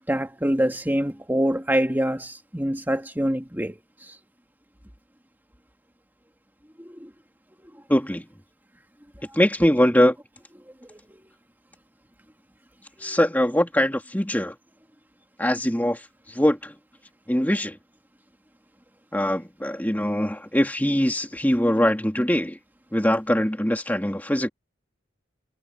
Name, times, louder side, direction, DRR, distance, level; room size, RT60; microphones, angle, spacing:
voice 1, 0.1-4.2 6.8-7.1 10.8-11.2 13.0-13.2, equal, 10° right, 2.2 m, -26 dB
voice 2, 7.9-8.2 9.3-10.2 13.0-14.5 15.4-16.0 16.3-16.7 17.3-17.8 19.1-22.6 22.9-24.5, equal, 10° left, 2.3 m, -22 dB
head